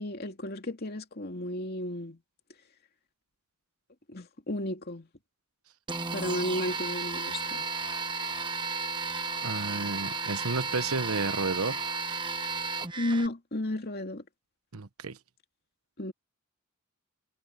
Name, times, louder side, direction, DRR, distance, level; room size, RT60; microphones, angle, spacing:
voice 1, 0.0-2.2 4.1-5.1 6.1-7.6 13.0-14.2 16.0-16.1, left 1 dB, 45° left, 2.6 m, -33 dB
sound 1, 5.9-13.3, right 4 dB, 20° right, 1.2 m, -33 dB
voice 2, 9.4-11.9 14.7-15.2, right 3 dB, 80° right, 1.1 m, -32 dB
head